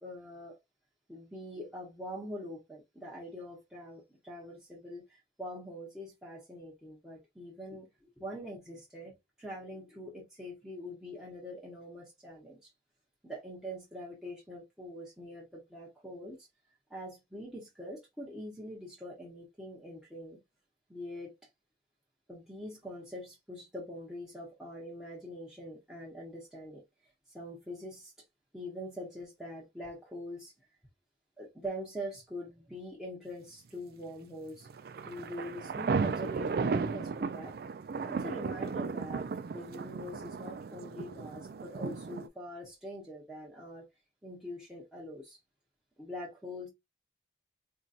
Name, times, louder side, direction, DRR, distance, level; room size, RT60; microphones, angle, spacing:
voice 1, 0.0-0.6 1.1-12.7 13.2-16.5 16.9-20.4 20.9-21.3 22.3-26.8 27.3-28.1 28.5-30.5 31.4-34.7 35.0-37.6 38.1-43.9 44.2-45.4 46.0-46.7, equal, 5° right, 0.9 m, -44 dB
sound 1, 34.7-42.3, right 5 dB, 55° right, 0.3 m, -35 dB
4.4 x 2.7 x 2.4 m
head